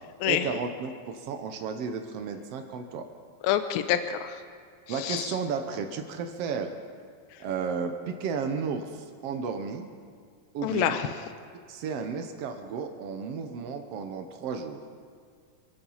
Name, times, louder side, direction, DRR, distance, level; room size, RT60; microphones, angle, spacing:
voice 1, 0.2-3.0 4.9-6.7 7.4-9.9 10.5-11.0 11.7-14.8, right 5 dB, 85° right, 6 dB, 1.3 m, -33 dB
voice 2, 3.4-4.4 4.9-5.3 10.6-11.1, left 11 dB, 85° left, 8 dB, 2.4 m, -27 dB
26.0 x 9.2 x 5.6 m, 2.1 s
omnidirectional pair, 4.2 m